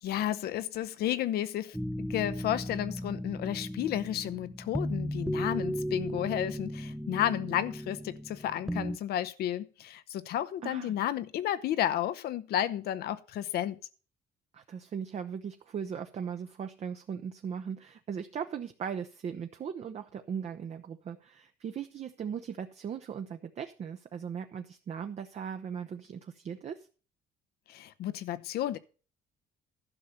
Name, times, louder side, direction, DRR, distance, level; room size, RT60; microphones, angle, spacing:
voice 1, 0.0-13.8 27.7-28.8, left 11 dB, 70° left, 0.8 m, -32 dB
sound 1, 1.7-9.0, equal, ahead, 0.6 m, -36 dB
voice 2, 10.6-10.9 14.5-26.9, right 7 dB, 40° right, 0.7 m, -38 dB
12.0 x 5.7 x 6.6 m
cardioid pair, 110°, 17 cm